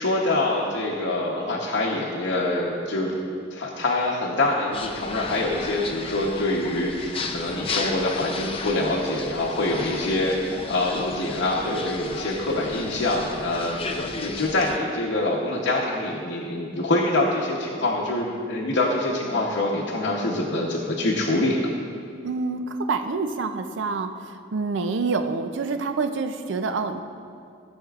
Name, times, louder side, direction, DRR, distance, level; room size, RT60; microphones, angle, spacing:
voice 1, 0.0-3.1 3.5-10.4 10.7-21.7, left 2 dB, 75° left, -4 dB, 0.9 m, -25 dB
sound 1, 4.7-14.8, left 3 dB, 30° left, 0.5 m, -34 dB
voice 2, 22.2-27.0, right 4 dB, 70° right, 8 dB, 0.5 m, -27 dB
14.5 x 7.2 x 2.4 m, 2.3 s
head